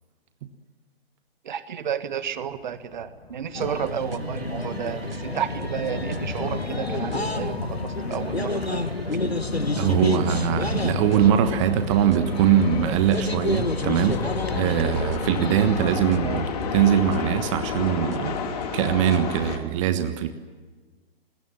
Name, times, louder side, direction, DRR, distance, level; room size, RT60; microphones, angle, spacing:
voice 1, 1.4-8.9 16.2-16.4, right 8 dB, 50° right, 12 dB, 1.7 m, -32 dB
sound 1, 2.5-19.6, left 6 dB, 40° left, 2.9 m, -33 dB
sound 2, 3.5-16.3, left 2 dB, 90° left, 1.4 m, -30 dB
sound 3, 3.6-19.6, right 5 dB, 65° right, 1.3 m, -40 dB
voice 2, 9.8-18.4 18.7-20.3, right 10 dB, 30° right, 9 dB, 1.4 m, -22 dB
25.5 x 21.0 x 7.5 m, 1.4 s
figure-of-eight pair, 120°, 30 cm